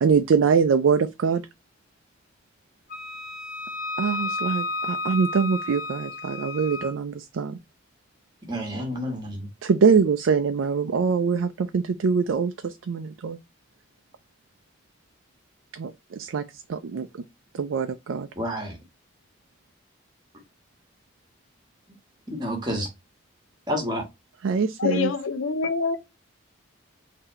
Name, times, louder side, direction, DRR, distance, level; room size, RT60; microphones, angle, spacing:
voice 1, 0.0-1.4 4.0-7.6 9.6-13.4 15.7-16.4 16.7-17.1 17.5-18.3 24.4-25.1, right 5 dB, 80° right, 0.4 m, -23 dB
Wind instrument woodwind instrument, 2.9-6.9, left 2 dB, 45° left, 0.7 m, -32 dB
voice 2, 8.5-9.5 18.4-18.8 22.3-22.9 23.7-24.0, equal, 20° right, 1.3 m, -29 dB
voice 3, 24.8-26.0, left 4 dB, 90° left, 0.7 m, -25 dB
3.9 x 2.8 x 4.1 m
head